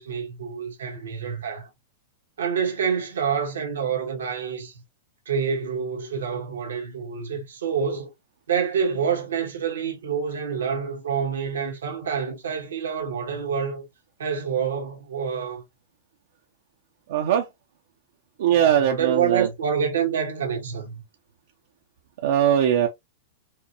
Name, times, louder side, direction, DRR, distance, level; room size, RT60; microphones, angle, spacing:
voice 1, 0.0-1.7 2.4-4.8 5.2-8.1 8.5-13.9 14.2-15.6 18.4-21.0, right 7 dB, 90° right, 1.4 m, -27 dB
voice 2, 17.1-17.5 18.4-19.5 22.2-22.9, right 9 dB, 70° right, 0.7 m, -20 dB
4.5 x 2.2 x 2.8 m
hypercardioid pair, 130°, 0 cm